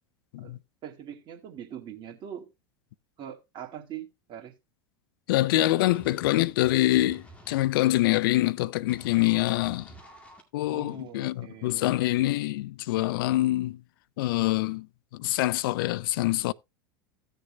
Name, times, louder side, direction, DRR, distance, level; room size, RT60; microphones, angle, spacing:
voice 1, 0.4-2.5 3.2-4.5 10.7-11.8, right 9 dB, 40° right, 2.1 m, -42 dB
voice 2, 5.3-9.9 10.5-13.8 14.2-14.9 15.1-16.5, left 16 dB, 65° left, 0.4 m, -25 dB
sound 1, 5.9-7.7 8.9-10.4, equal, 10° left, 2.1 m, -49 dB
16.5 x 6.6 x 2.2 m
hypercardioid pair, 90°, 12 cm